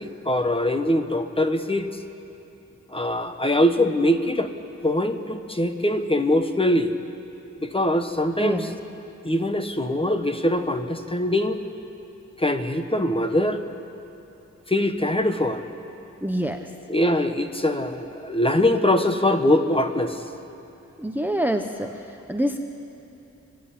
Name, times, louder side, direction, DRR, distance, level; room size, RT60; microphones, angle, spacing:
voice 1, 0.0-1.9 2.9-4.5 4.8-6.9 7.6-8.7 9.2-11.6 12.4-13.6 14.7-15.6 16.9-20.2, left 1 dB, 20° left, 7 dB, 1.2 m, -22 dB
voice 2, 8.4-8.7 16.2-16.7 21.0-21.9 22.3-22.6, right 1 dB, 5° right, 6 dB, 0.8 m, -26 dB
30.0 x 10.5 x 8.5 m, 2.8 s
wide cardioid pair, 95°, 30 cm